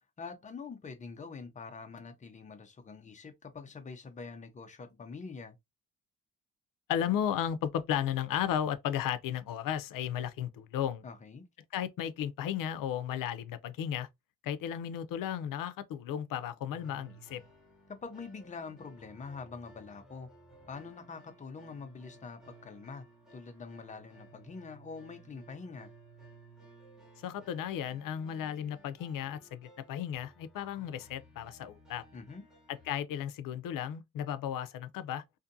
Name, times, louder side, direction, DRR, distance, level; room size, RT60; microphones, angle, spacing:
voice 1, 0.2-5.6 11.0-11.5 18.0-20.3 20.7-23.1 23.3-25.9 32.1-32.4, left 4 dB, 25° left, 0.5 m, -45 dB
voice 2, 6.9-11.0 11.7-14.1 14.4-17.4 27.2-32.0 32.7-35.2, left 10 dB, 85° left, 0.5 m, -34 dB
sound 1, 16.7-32.9, right 2 dB, ahead, 0.8 m, -57 dB
2.6 x 2.5 x 2.6 m
wide cardioid pair, 170°, 32 cm